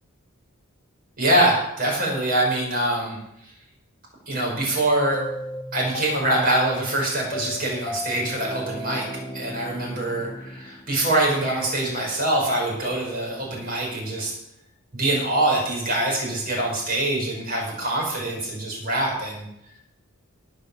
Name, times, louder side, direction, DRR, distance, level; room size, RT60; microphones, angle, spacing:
voice 1, 1.2-3.2 4.3-5.2 5.7-9.1 9.3-14.3 14.9-19.5, right 1 dB, 40° right, -2 dB, 6.2 m, -24 dB
sound 1, 5.1-11.3, equal, 20° left, 1.3 m, -36 dB
18.0 x 6.2 x 7.3 m, 0.80 s
head